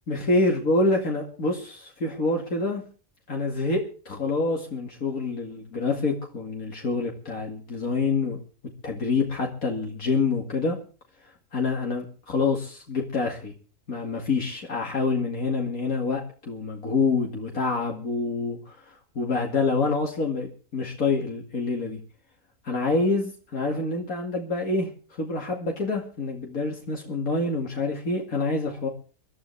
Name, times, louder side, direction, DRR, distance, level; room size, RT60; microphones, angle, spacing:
voice 1, 0.1-2.8 3.3-8.4 8.8-10.8 11.5-13.5 13.9-22.0 22.6-24.9 25.2-28.9, left 3 dB, 75° left, 0 dB, 2.7 m, -27 dB
25.5 x 12.5 x 3.3 m, 0.38 s
omnidirectional pair, 1.5 m